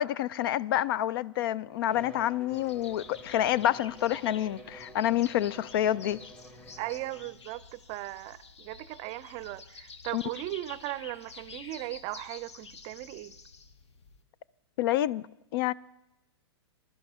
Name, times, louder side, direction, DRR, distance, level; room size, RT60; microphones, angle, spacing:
voice 1, 0.0-6.2 10.1-10.2 14.8-15.2 15.5-15.7, left 12 dB, 55° left, 0.4 m, -28 dB
Bowed string instrument, 1.9-7.5, equal, 5° left, 1.2 m, -50 dB
sound 1, 2.5-14.2, left 4 dB, 75° left, 1.2 m, -49 dB
voice 2, 6.8-13.3, right 17 dB, 35° right, 0.5 m, -38 dB
20.5 x 12.0 x 3.6 m
hypercardioid pair, 115°, 15 cm